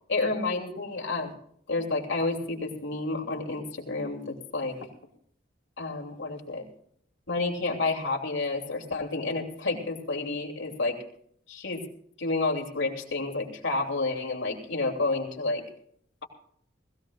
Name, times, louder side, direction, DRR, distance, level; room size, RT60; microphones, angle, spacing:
voice 1, 0.1-1.3 1.7-4.8 5.8-6.6 7.3-11.0 11.5-11.8 12.2-15.6, left 3 dB, 85° left, 0 dB, 3.1 m, -30 dB
21.0 x 16.0 x 2.5 m, 0.64 s
head